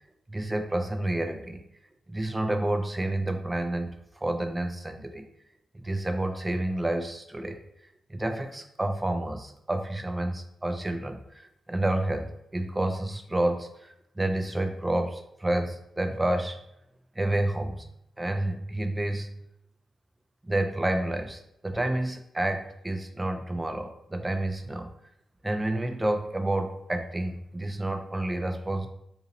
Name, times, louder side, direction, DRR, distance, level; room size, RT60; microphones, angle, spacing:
voice 1, 0.3-1.6 2.1-3.9 4.2-5.2 5.7-7.6 8.1-16.6 17.2-17.9 18.2-19.3 20.5-24.9 25.4-28.9, right 1 dB, 15° right, 5 dB, 0.5 m, -29 dB
2.7 x 2.7 x 3.9 m, 0.78 s
cardioid pair, 70°, 0 cm